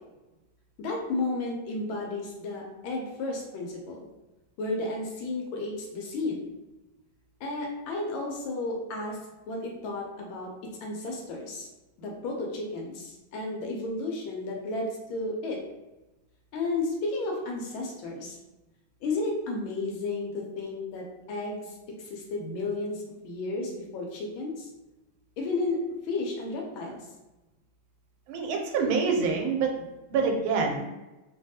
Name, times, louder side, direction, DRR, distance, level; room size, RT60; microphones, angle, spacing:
voice 1, 0.8-4.1 4.6-6.5 7.4-9.2 9.5-10.5 10.8-11.7 12.0-15.6 16.5-18.4 19.0-24.7 25.4-27.0, left 2 dB, 85° left, -1 dB, 1.4 m, -33 dB
voice 2, 28.3-29.7 30.1-30.8, right 5 dB, 85° right, 2 dB, 1.4 m, -26 dB
3.3 x 2.2 x 2.7 m, 1.0 s
omnidirectional pair, 2.2 m